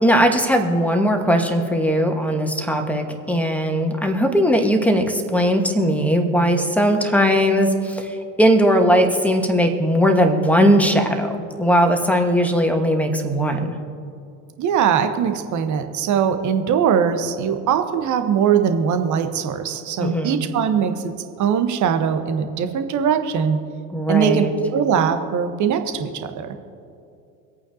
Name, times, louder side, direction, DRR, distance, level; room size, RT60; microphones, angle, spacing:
voice 1, 0.0-13.8 20.0-20.4 23.9-24.5, equal, 5° left, 4 dB, 1.5 m, -19 dB
voice 2, 14.6-21.1 21.4-23.6 24.1-26.6, right 7 dB, 40° right, 8 dB, 1.3 m, -21 dB
25.5 x 8.7 x 2.9 m, 2.5 s
figure-of-eight pair, 75°, 48 cm